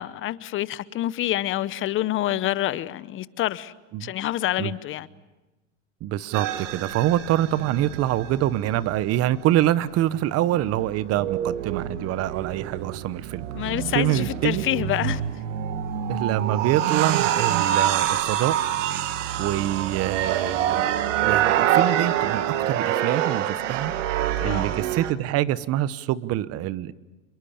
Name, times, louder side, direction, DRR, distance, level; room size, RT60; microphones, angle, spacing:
voice 1, 0.0-3.7 4.0-5.1 13.5-15.2 24.4-24.7, left 14 dB, 35° left, 0.8 m, -27 dB
voice 2, 6.0-14.6 16.1-18.6 19.4-20.9 21.2-23.9 24.4-26.9, right 13 dB, 40° right, 1.0 m, -25 dB
sound 1, 6.3-9.6 10.0-25.1, right 11 dB, 75° right, 2.0 m, -26 dB
27.5 x 23.0 x 7.2 m
supercardioid pair, 120°, 38 cm